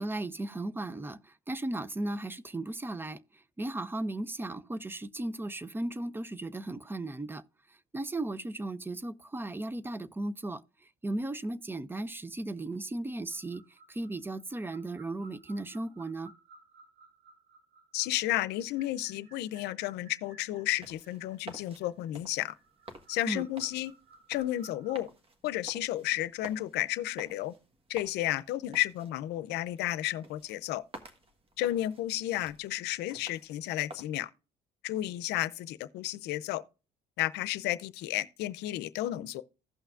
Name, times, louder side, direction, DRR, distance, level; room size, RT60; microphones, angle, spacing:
voice 1, 0.0-3.2 3.6-7.4 7.9-10.6 11.0-13.6 13.9-16.3 23.3-23.5, right 2 dB, 10° right, 0.5 m, -36 dB
sound 1, 13.3-25.0, right 3 dB, 85° right, 2.8 m, -59 dB
voice 2, 17.9-22.5 23.1-23.9 24.3-25.1 25.4-27.5 27.9-30.8 31.6-34.3 34.8-36.6 37.2-39.4, left 15 dB, 85° left, 0.6 m, -32 dB
sound 2, 20.7-34.1, right 1 dB, 35° right, 1.4 m, -52 dB
16.0 x 5.7 x 2.4 m
cardioid pair, 110°, 17 cm